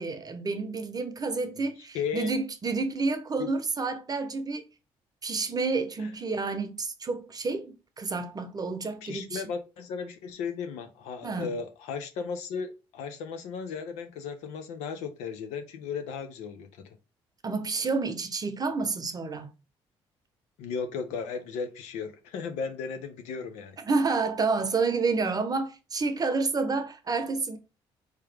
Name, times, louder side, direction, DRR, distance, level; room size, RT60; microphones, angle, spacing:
voice 1, 0.0-4.6 5.2-9.4 11.2-11.5 17.4-19.5 23.8-27.6, right 4 dB, 35° right, 0.8 m, -29 dB
voice 2, 1.9-2.3 3.4-3.5 9.0-16.7 20.6-23.8, left 6 dB, 85° left, 0.5 m, -35 dB
3.6 x 2.9 x 3.3 m
supercardioid pair, 65°, 11 cm